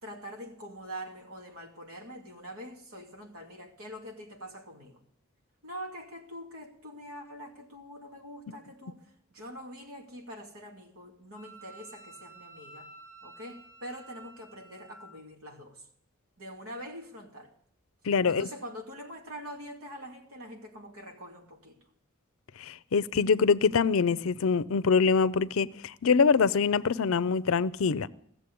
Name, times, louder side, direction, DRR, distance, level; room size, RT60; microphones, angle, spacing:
voice 1, 0.0-5.0 5.6-12.9 13.2-15.9 16.4-17.5 18.3-21.8, equal, 85° right, 2.3 m, -44 dB
Wind instrument woodwind instrument, 11.4-15.1, right 2 dB, 65° right, 6.6 m, -51 dB
voice 2, 18.1-18.5 22.6-28.1, left 5 dB, 70° left, 0.5 m, -24 dB
16.0 x 7.2 x 8.4 m
head